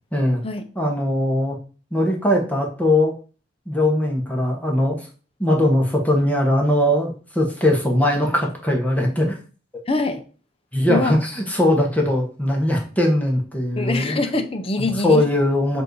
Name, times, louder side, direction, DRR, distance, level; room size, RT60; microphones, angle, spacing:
voice 1, 0.1-0.4 0.7-1.6 1.9-3.1 3.7-5.1 5.4-9.4 10.7-14.2 15.0-15.8, left 1 dB, 10° left, 0 dB, 1.2 m, -20 dB
voice 2, 9.9-10.2 10.9-11.2 13.8-15.2, left 3 dB, 30° left, 7 dB, 0.7 m, -24 dB
7.4 x 2.7 x 4.7 m, 0.37 s
head